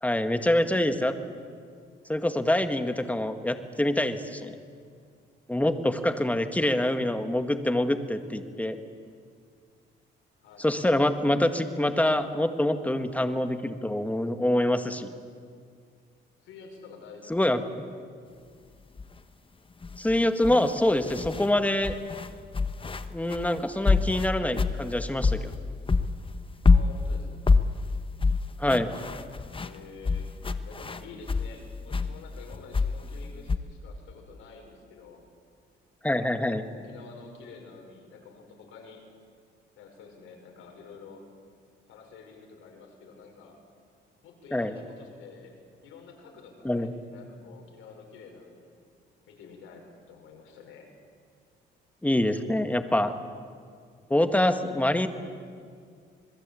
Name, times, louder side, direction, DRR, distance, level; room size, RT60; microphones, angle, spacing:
voice 1, 0.0-1.1 2.1-4.6 5.5-8.8 10.6-15.1 17.3-17.6 20.0-21.9 23.1-25.5 28.6-28.9 36.0-36.6 44.5-44.7 46.6-46.9 52.0-53.1 54.1-55.1, left 1 dB, 5° left, 8 dB, 1.9 m, -25 dB
voice 2, 10.4-11.1 16.4-17.4 17.7-17.8 26.7-27.4 29.5-30.3 30.6-35.2 36.4-39.0 39.8-41.2 41.9-43.6 44.2-45.6 45.8-48.7 49.3-50.9, left 5 dB, 90° left, 2 dB, 5.9 m, -49 dB
sound 1, 19.0-19.2 19.8-21.5 21.8-25.6 25.9-31.5 31.9-33.6, left 4 dB, 25° left, 1.2 m, -26 dB
26.5 x 21.5 x 8.6 m, 2.1 s
cardioid pair, 90°, 20 cm